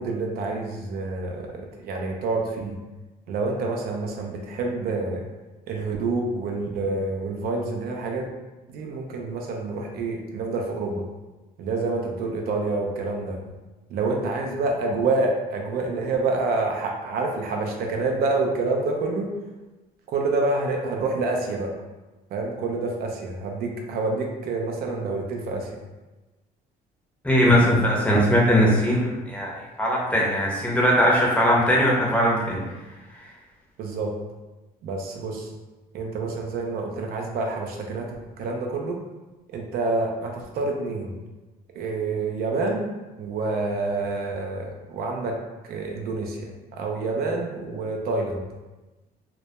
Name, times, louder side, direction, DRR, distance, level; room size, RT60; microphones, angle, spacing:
voice 1, 0.0-2.7 3.3-5.2 5.7-8.3 8.7-11.0 11.6-13.4 13.9-19.3 20.1-21.7 22.3-25.7 33.8-34.1 34.8-35.5 35.9-38.1 38.4-39.0 39.5-41.1 41.8-42.9 43.2-45.3 45.7-48.4, right 3 dB, 65° right, 1 dB, 0.4 m, -27 dB
voice 2, 27.2-29.5 29.8-32.6 33.1-33.2, equal, 10° left, -4 dB, 0.6 m, -20 dB
2.1 x 2.1 x 2.8 m, 1.1 s
cardioid pair, 110°, 17 cm